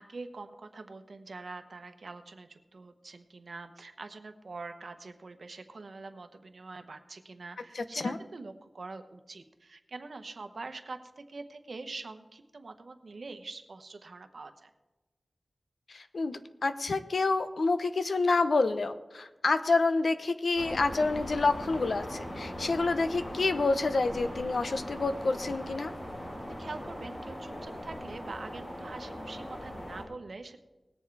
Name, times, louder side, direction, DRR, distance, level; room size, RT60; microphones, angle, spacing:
voice 1, 0.0-14.7 26.6-30.6, right 3 dB, 70° right, 8 dB, 1.0 m, -44 dB
voice 2, 7.7-8.2 15.9-25.9, left 3 dB, 80° left, 10 dB, 0.7 m, -28 dB
sound 1, 20.6-30.0, equal, 60° left, 5.5 m, -40 dB
19.5 x 7.3 x 4.7 m, 1.1 s
wide cardioid pair, 55°, 0 cm